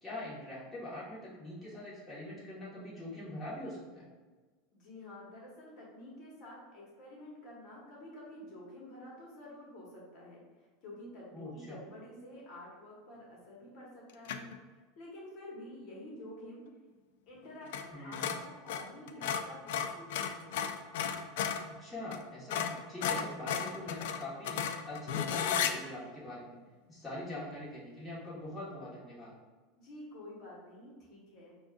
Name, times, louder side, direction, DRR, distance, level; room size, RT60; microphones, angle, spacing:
voice 1, 0.0-4.1 11.3-11.8 17.9-18.3 21.7-24.6 24.8-26.6 26.9-29.3, left 1 dB, 10° left, -9 dB, 1.3 m, -43 dB
voice 2, 4.7-14.5 15.0-16.6 17.3-20.5 29.7-31.6, left 1 dB, 45° left, -4 dB, 1.2 m, -49 dB
sound 1, 14.3-14.6 17.7-17.9 18.1-21.7 22.1-22.2 22.5-25.7, left 8 dB, 75° left, 0.3 m, -34 dB
6.0 x 2.3 x 2.4 m, 1.3 s
supercardioid pair, 145°, 0 cm